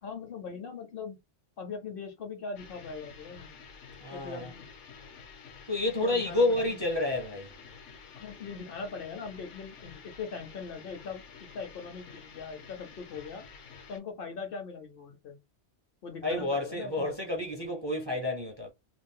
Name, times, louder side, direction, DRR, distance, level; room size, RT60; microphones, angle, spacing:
voice 1, 0.0-1.2 1.6-3.5 4.1-4.7 6.0-6.8 8.2-13.4 13.9-15.4 16.0-17.1, left 5 dB, 60° left, 0.7 m, -41 dB
sound 1, 2.5-14.0, left 5 dB, 80° left, 1.1 m, -50 dB
voice 2, 4.0-4.5 5.7-7.5 16.2-18.7, left 2 dB, 30° right, 0.5 m, -29 dB
2.5 x 2.2 x 3.6 m
omnidirectional pair, 1.2 m